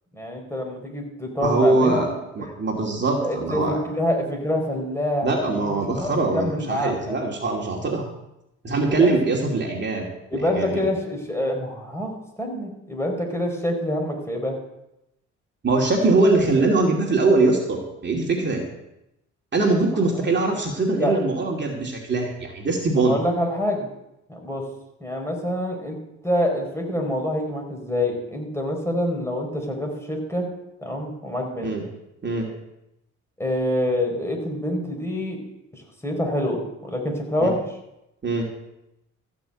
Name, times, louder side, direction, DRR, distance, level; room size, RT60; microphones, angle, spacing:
voice 1, 0.1-2.5 3.2-7.1 9.0-9.1 10.3-14.6 20.0-20.3 21.0-21.1 23.0-23.9 24.3-24.7 25.0-26.0 26.2-30.5 30.8-31.7 33.4-35.4 35.7-37.6, left 1 dB, 10° left, 1 dB, 4.4 m, -26 dB
voice 2, 1.4-2.1 2.4-3.8 5.2-8.1 8.6-10.1 10.3-10.8 15.6-18.6 19.5-23.1 31.6-31.8 32.2-32.5 37.4-37.5 38.2-38.5, right 3 dB, 35° right, 0 dB, 2.6 m, -22 dB
14.0 x 6.2 x 8.7 m, 0.87 s
cardioid pair, 90°, 30 cm